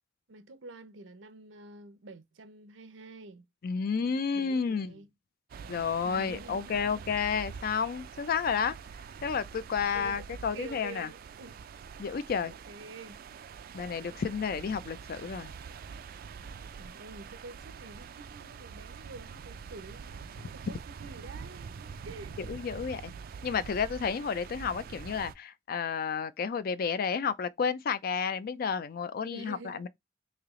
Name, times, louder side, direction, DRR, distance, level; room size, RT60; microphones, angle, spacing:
voice 1, 0.3-3.5 4.0-5.1 6.0-7.5 9.9-11.6 12.7-13.2 16.7-22.3 29.3-29.8, right 3 dB, 85° right, 0.7 m, -48 dB
voice 2, 3.6-5.0 5.7-8.8 9.2-11.1 12.0-12.5 13.7-15.5 22.5-23.1 23.4-29.9, left 6 dB, 50° left, 0.4 m, -31 dB
sound 1, 5.5-25.3, right 6 dB, 50° right, 0.3 m, -45 dB
3.2 x 2.8 x 3.6 m
head